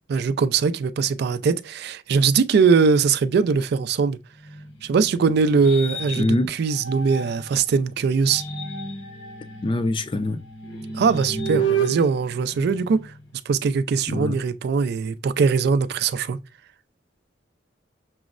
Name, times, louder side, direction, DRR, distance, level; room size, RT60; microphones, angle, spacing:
voice 1, 0.1-4.2 4.8-8.4 10.9-13.1 13.5-16.4, right 5 dB, 60° right, 0.3 m, -21 dB
sound 1, 4.4-7.6 8.1-13.3, right 5 dB, 75° left, 0.8 m, -31 dB
voice 2, 6.2-6.5 9.6-10.4 14.1-14.4, left 1 dB, 30° left, 0.4 m, -23 dB
6.0 x 2.0 x 2.4 m
head